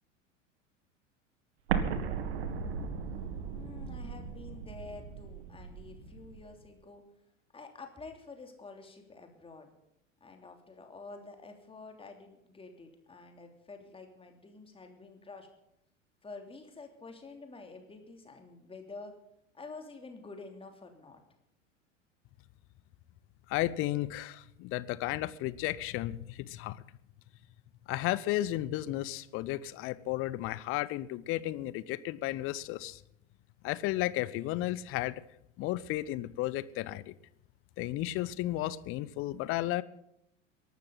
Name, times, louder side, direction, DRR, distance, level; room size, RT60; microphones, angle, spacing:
Explosion, 1.7-6.5, right 6 dB, 55° right, 1.9 m, -36 dB
voice 1, 3.5-7.0 7.5-9.7 10.2-15.5 16.2-19.1 19.5-21.2, left 3 dB, 15° left, 3.1 m, -49 dB
voice 2, 23.5-26.8 27.9-33.0 33.6-35.2 35.6-37.1 37.8-39.8, left 15 dB, 35° left, 0.8 m, -33 dB
22.5 x 12.5 x 4.0 m
figure-of-eight pair, 85°, 38 cm